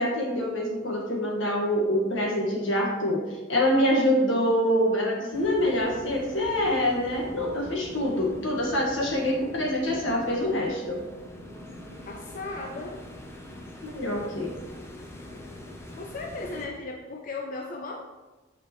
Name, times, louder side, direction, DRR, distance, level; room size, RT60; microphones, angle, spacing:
voice 1, 0.0-11.0 13.5-14.5, left 1 dB, 80° left, -2 dB, 1.8 m, -25 dB
sound 1, 5.3-16.7, left 1 dB, 15° left, 0.8 m, -43 dB
voice 2, 12.0-13.0 16.0-18.0, left 3 dB, 45° left, 2 dB, 0.5 m, -36 dB
9.0 x 5.0 x 3.2 m, 1.2 s
head